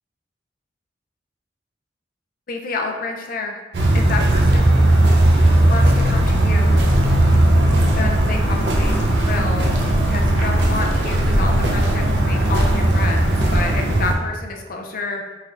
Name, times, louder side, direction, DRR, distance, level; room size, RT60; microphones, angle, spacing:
voice 1, 2.5-3.6 3.9-4.7 5.6-6.9 8.0-9.7 10.1-15.2, left 3 dB, 50° left, 2 dB, 0.5 m, -29 dB
sound 1, 3.7-14.1, right 1 dB, 70° right, 0.6 m, -17 dB
4.7 x 3.3 x 2.5 m, 1.2 s
head